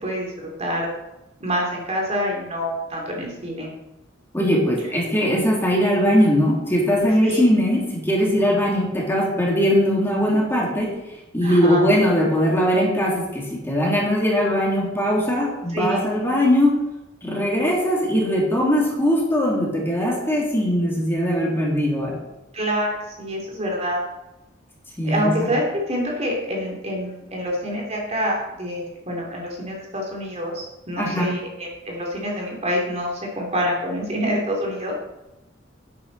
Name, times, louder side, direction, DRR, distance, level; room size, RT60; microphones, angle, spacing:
voice 1, 0.0-0.9 1.4-3.7 7.2-7.4 11.4-11.8 15.7-16.0 22.5-24.0 25.0-35.0, equal, 35° right, -1 dB, 2.9 m, -26 dB
voice 2, 4.3-11.0 11.3-16.9 17.2-22.2 25.0-25.3 30.9-31.4, equal, 10° left, -3 dB, 2.6 m, -20 dB
11.0 x 9.7 x 4.1 m, 0.96 s
head